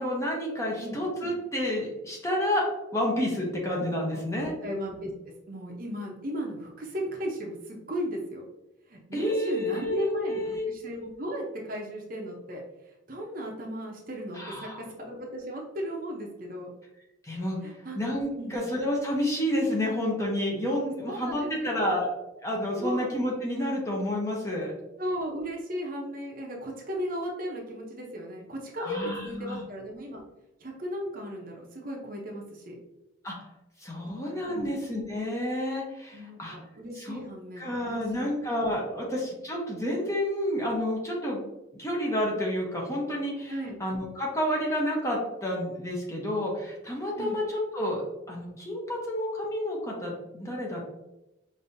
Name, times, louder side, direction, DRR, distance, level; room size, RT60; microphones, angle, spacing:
voice 1, 0.0-2.7 2.9-4.5 9.1-10.7 14.4-14.8 17.2-17.6 18.0-22.1 22.4-24.7 28.8-29.6 33.2-33.3 33.8-36.6 37.0-37.2 37.6-41.5 41.8-43.5 43.8-47.4 47.7-48.0 48.3-50.8, left 1 dB, 15° left, -3 dB, 0.8 m, -30 dB
voice 2, 4.1-5.1 5.5-8.5 8.9-12.6 13.1-16.7 17.6-18.0 18.3-18.6 21.0-22.0 22.8-23.1 25.0-30.2 30.6-32.8 34.5-34.7 36.1-38.3 43.5-43.8 47.2-47.4, equal, 45° right, -1 dB, 0.7 m, -36 dB
5.4 x 2.7 x 2.6 m, 0.95 s
head